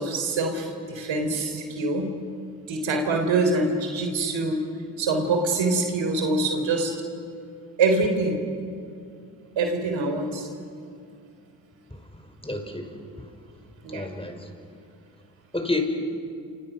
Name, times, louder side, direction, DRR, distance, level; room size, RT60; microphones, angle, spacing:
voice 1, 0.0-2.1 2.7-4.7 5.0-6.9 7.8-8.4 9.6-10.5 13.8-14.1, right 3 dB, 75° right, 4 dB, 3.8 m, -24 dB
voice 2, 12.4-12.9 13.9-14.5 15.5-15.8, left 2 dB, 10° left, 5 dB, 5.2 m, -29 dB
28.0 x 26.5 x 6.3 m, 2.5 s
hypercardioid pair, 40°, 46 cm